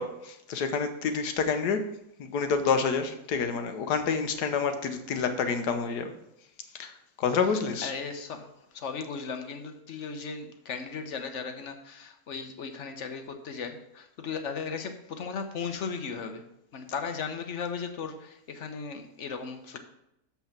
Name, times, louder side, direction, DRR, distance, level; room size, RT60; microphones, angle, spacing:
voice 1, 0.0-1.8 2.2-6.1 6.7-6.9 7.2-7.9, left 5 dB, 85° left, 8 dB, 1.5 m, -28 dB
voice 2, 7.8-16.4 16.7-19.8, left 5 dB, 55° left, 7 dB, 1.0 m, -36 dB
7.1 x 5.9 x 5.9 m, 0.81 s
omnidirectional pair, 1.7 m